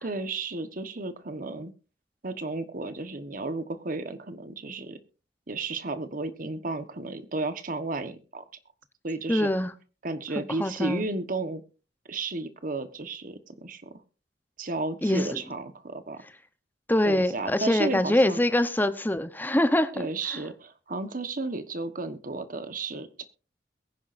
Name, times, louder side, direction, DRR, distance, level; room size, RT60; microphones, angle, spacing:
voice 1, 0.0-1.7 2.2-5.0 5.5-8.4 9.0-9.5 10.0-11.6 12.1-14.0 14.6-16.2 17.0-18.4 19.9-23.2, right 3 dB, 50° right, 1.3 m, -33 dB
voice 2, 9.3-9.7 10.4-11.1 15.0-15.4 16.9-20.1 20.3-20.4, left 1 dB, 10° left, 0.9 m, -24 dB
22.0 x 10.0 x 2.6 m
head